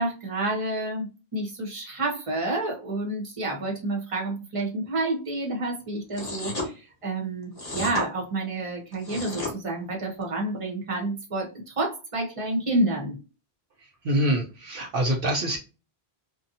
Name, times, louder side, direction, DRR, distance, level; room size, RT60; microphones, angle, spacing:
voice 1, 0.0-13.2, right 2 dB, 35° right, 0 dB, 0.9 m, -29 dB
sound 1, 6.1-6.7 7.6-8.1 8.9-9.5, left 2 dB, 25° left, 0.9 m, -32 dB
voice 2, 14.0-15.6, right 1 dB, 65° right, 0 dB, 0.8 m, -25 dB
2.6 x 2.3 x 2.6 m, 0.31 s
omnidirectional pair, 1.0 m